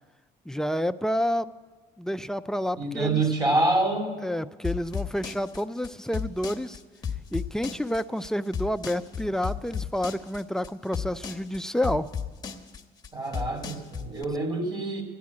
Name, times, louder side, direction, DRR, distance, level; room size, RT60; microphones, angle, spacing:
voice 1, 0.5-1.5 2.0-3.2 4.2-6.8 7.3-12.1, equal, 5° left, 11 dB, 0.4 m, -29 dB
voice 2, 2.8-4.1 13.1-15.0, right 2 dB, 25° right, 2 dB, 2.7 m, -26 dB
sound 1, 4.6-14.2, left 7 dB, 25° left, 1.1 m, -34 dB
13.0 x 10.5 x 8.4 m, 1.4 s
cardioid pair, 110°, 17 cm